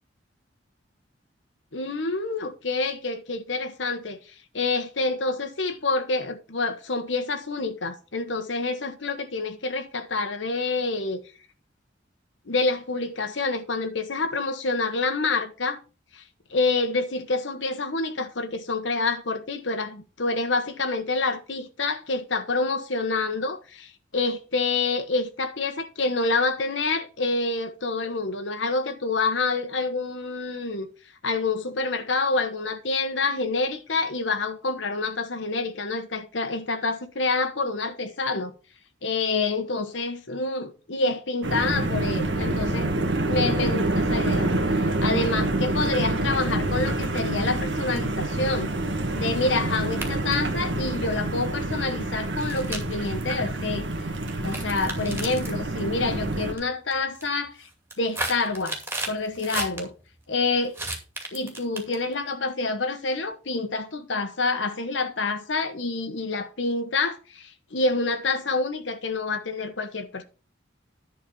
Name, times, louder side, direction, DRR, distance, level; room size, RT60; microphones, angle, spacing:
voice 1, 1.7-4.2 4.5-11.2 12.5-15.8 16.1-16.2 16.5-30.9 31.2-38.5 39.0-42.9 43.3-44.5 45.0-48.7 49.1-53.8 54.4-57.7 58.0-58.8 59.1-59.9 60.3-60.7 61.3-70.2, left 3 dB, 80° left, 1.2 m, -27 dB
sound 1, 41.4-56.5, right 2 dB, 85° right, 1.7 m, -27 dB
sound 2, 49.8-50.5 51.3-51.4 52.4-53.2 54.3-55.6 56.3-56.6 56.9-57.3 57.7-59.8 60.7-62.1, right 2 dB, 10° right, 2.4 m, -33 dB
11.0 x 4.2 x 7.0 m
head